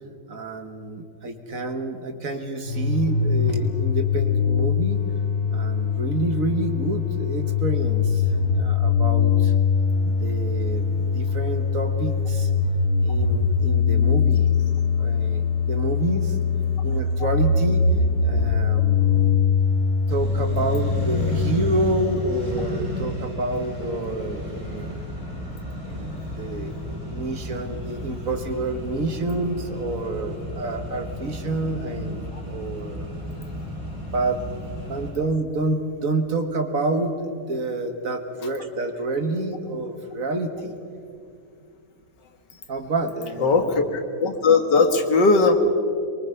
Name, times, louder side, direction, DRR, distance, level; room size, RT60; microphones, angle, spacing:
voice 1, 0.3-5.0 5.5-9.5 10.0-12.5 13.0-14.6 15.0-16.4 16.8-17.8 18.2-19.3 20.1-25.0 25.8-26.8 27.1-33.1 34.0-34.4 34.8-40.8 42.7-43.7, right 2 dB, 55° right, 6 dB, 1.9 m, -28 dB
sound 1, 2.6-21.8, left 6 dB, 50° left, 1.1 m, -22 dB
Accelerating revving vroom, 20.1-35.1, equal, 15° right, 8.1 m, -33 dB
voice 2, 43.9-45.5, left 4 dB, 90° left, 6 dB, 2.3 m, -18 dB
24.5 x 22.5 x 5.7 m, 2.5 s
omnidirectional pair, 1.8 m